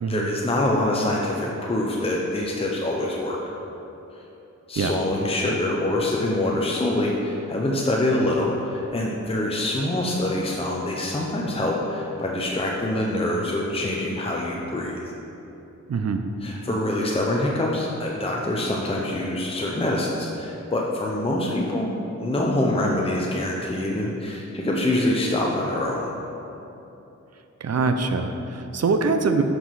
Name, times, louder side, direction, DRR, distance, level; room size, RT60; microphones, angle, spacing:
voice 1, 0.1-3.4 4.7-15.0 16.4-21.9 22.2-26.0, left 1 dB, 20° left, -2 dB, 0.8 m, -25 dB
voice 2, 15.9-16.2 27.6-29.4, right 4 dB, 55° right, 7 dB, 0.6 m, -23 dB
9.7 x 6.0 x 4.8 m, 2.9 s
wide cardioid pair, 125°, 30 cm